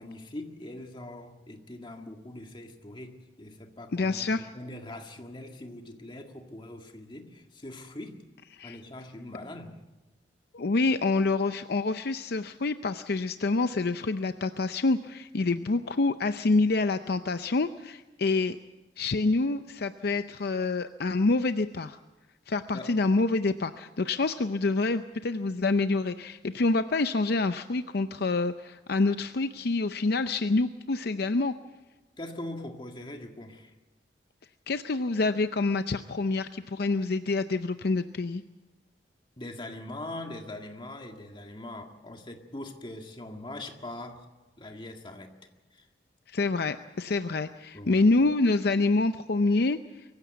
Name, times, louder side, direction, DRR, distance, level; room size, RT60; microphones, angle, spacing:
voice 1, 0.0-8.2 8.6-9.8 22.7-22.9 32.2-33.7 39.4-44.3 44.6-45.4 45.7-45.9 47.7-48.1, left 1 dB, 25° left, 4 dB, 1.9 m, -42 dB
voice 2, 3.9-4.5 8.6-8.8 10.5-18.6 19.0-22.0 22.5-31.5 34.7-38.4 46.3-49.8, left 3 dB, 60° left, 10 dB, 0.6 m, -27 dB
23.5 x 15.5 x 8.1 m, 1.1 s
head